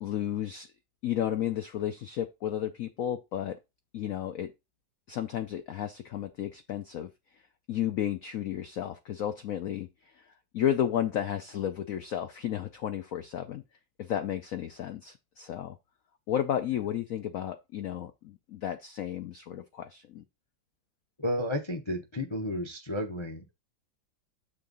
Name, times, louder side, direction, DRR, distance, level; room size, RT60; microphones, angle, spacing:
voice 1, 0.0-0.7 1.0-3.6 3.9-4.5 5.1-7.4 7.7-13.6 14.0-15.8 16.3-20.2, left 10 dB, 90° left, 0.7 m, -33 dB
voice 2, 21.2-23.5, left 1 dB, 50° left, 0.3 m, -32 dB
6.8 x 3.5 x 5.3 m
omnidirectional pair, 2.1 m